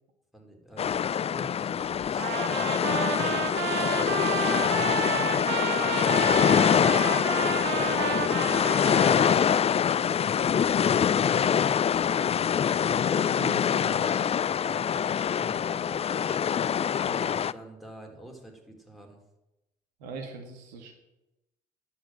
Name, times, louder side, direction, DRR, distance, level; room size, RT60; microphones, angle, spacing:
voice 1, 0.3-4.8 5.8-6.4 7.4-10.3 11.2-12.4 13.1-13.7 14.5-16.3 17.0-19.2, right 2 dB, ahead, 1 dB, 4.0 m, -48 dB
sound 1, 0.8-17.5, left 8 dB, 30° left, 0.4 m, -25 dB
Trumpet, 2.2-9.6, right 11 dB, 60° right, 0.8 m, -32 dB
voice 2, 13.1-14.2 17.1-17.3 20.0-20.9, right 3 dB, 80° right, 4 dB, 1.9 m, -40 dB
10.0 x 8.1 x 7.8 m, 0.94 s
hypercardioid pair, 55°, 21 cm